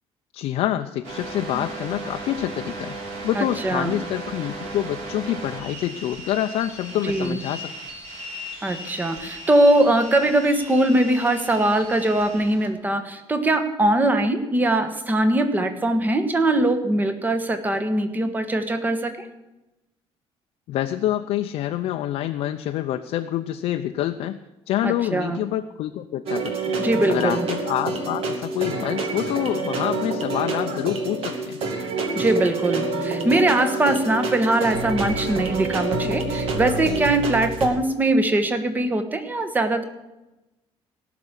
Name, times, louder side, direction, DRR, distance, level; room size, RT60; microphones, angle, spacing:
voice 1, 0.3-3.0 3.2-7.7 20.7-24.4 24.7-26.8 27.1-31.6, left 12 dB, 75° left, 5 dB, 0.6 m, -27 dB
sound 1, 1.0-12.7, right 2 dB, 85° right, 4.2 m, -37 dB
voice 2, 3.3-4.0 7.0-7.4 8.6-19.1 24.8-25.4 26.8-27.5 32.1-39.8, right 1 dB, 15° right, 9 dB, 1.2 m, -21 dB
sound 2, 26.3-37.7, right 3 dB, 70° right, 2.2 m, -27 dB
18.0 x 6.0 x 8.2 m, 0.99 s
cardioid pair, 155°, 10 cm